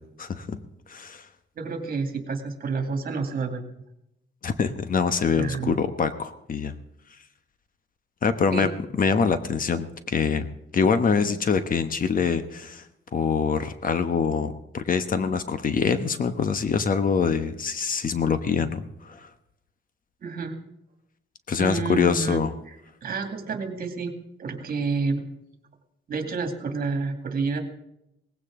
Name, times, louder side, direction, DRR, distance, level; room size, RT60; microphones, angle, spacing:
voice 1, 0.2-0.6 0.9-1.3 4.4-6.7 8.2-8.7 9.0-10.5 10.7-12.8 13.1-19.3 21.5-22.5, left 5 dB, 45° left, 10 dB, 1.1 m, -24 dB
voice 2, 1.6-3.6 5.4-5.7 8.5-8.7 20.2-20.6 21.6-22.4 22.7-22.8 23.0-25.3 26.1-27.6, right 4 dB, 50° right, 5 dB, 2.3 m, -29 dB
18.5 x 16.0 x 3.8 m, 0.82 s
cardioid pair, 110°, 19 cm